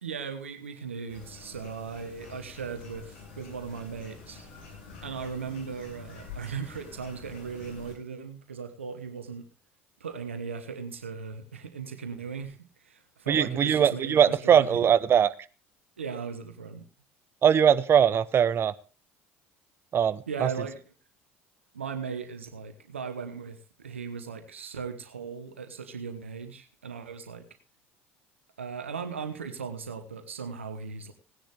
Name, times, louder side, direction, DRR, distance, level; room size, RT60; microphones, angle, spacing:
voice 1, 0.0-4.5 5.0-9.5 10.0-14.7 16.0-16.8 20.3-20.8 21.7-27.5 28.6-31.1, right 5 dB, 85° right, 8 dB, 1.1 m, -38 dB
sound 1, 1.1-7.9, left 5 dB, 70° left, 7.6 m, -47 dB
voice 2, 13.3-15.3 17.4-18.7 19.9-20.5, right 8 dB, 40° right, 17 dB, 0.7 m, -21 dB
17.5 x 10.0 x 3.4 m, 0.34 s
figure-of-eight pair, 65°, 6 cm